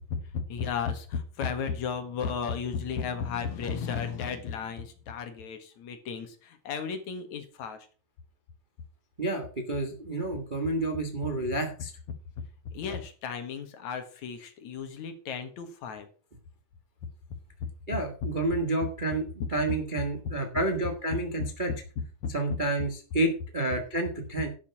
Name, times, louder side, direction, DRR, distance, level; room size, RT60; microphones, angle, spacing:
voice 1, 0.0-7.9 12.7-16.1 19.4-19.8 22.2-22.3, left 6 dB, 65° left, 7 dB, 2.8 m, -34 dB
voice 2, 9.2-11.9 17.9-21.7 22.3-24.5, right 2 dB, 25° right, 3 dB, 1.1 m, -30 dB
11.5 x 7.0 x 5.9 m, 0.37 s
omnidirectional pair, 3.7 m